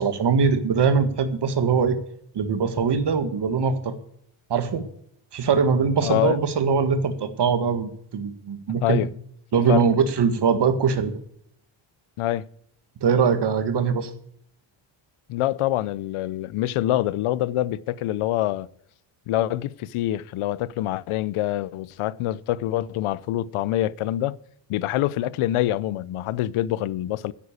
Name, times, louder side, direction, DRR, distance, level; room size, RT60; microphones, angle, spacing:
voice 1, 0.0-2.0 2.3-4.0 4.5-4.8 5.3-9.1 9.5-11.1 13.0-14.1, right 5 dB, 55° right, 1.8 m, -22 dB
voice 2, 6.0-6.4 8.8-9.1 9.7-9.8 12.2-12.5 15.3-18.7 19.3-24.4 24.7-27.3, left 14 dB, 75° left, 0.7 m, -25 dB
10.0 x 8.5 x 8.4 m
cardioid pair, 95°, 50 cm